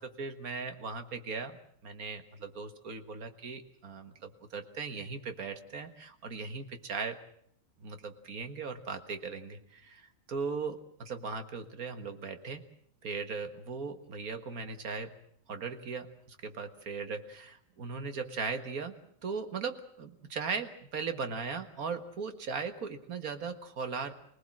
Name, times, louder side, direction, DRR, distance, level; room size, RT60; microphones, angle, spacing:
voice 1, 0.0-1.6 1.8-7.2 7.8-12.6 13.0-15.2 15.5-24.1, right 5 dB, 85° right, 8 dB, 2.0 m, -38 dB
24.5 x 18.5 x 7.5 m, 0.66 s
omnidirectional pair, 1.5 m